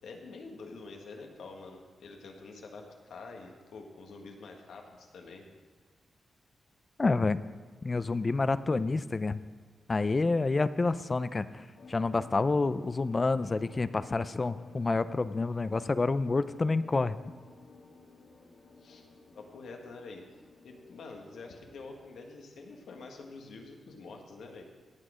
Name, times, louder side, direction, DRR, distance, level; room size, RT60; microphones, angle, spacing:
voice 1, 0.0-5.4 18.8-19.1 19.3-20.2 20.6-24.6, left 3 dB, 85° left, 2 dB, 1.6 m, -47 dB
voice 2, 7.0-7.4 7.8-9.4 9.9-11.5 11.9-17.2, left 3 dB, 30° left, 15 dB, 0.4 m, -28 dB
sound 1, 11.7-21.9, left 3 dB, 60° left, 1.8 m, -54 dB
17.0 x 6.4 x 5.0 m, 1.5 s
cardioid pair, 105°, 0 cm